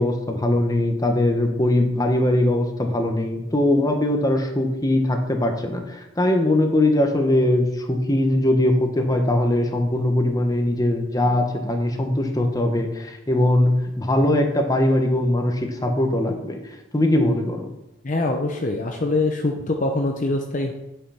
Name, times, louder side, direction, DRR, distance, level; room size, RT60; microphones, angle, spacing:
voice 1, 0.0-16.6 16.9-17.7, left 1 dB, 20° left, 3 dB, 1.1 m, -21 dB
voice 2, 18.0-20.7, left 2 dB, 40° left, 3 dB, 0.7 m, -24 dB
9.6 x 5.6 x 5.7 m, 0.93 s
head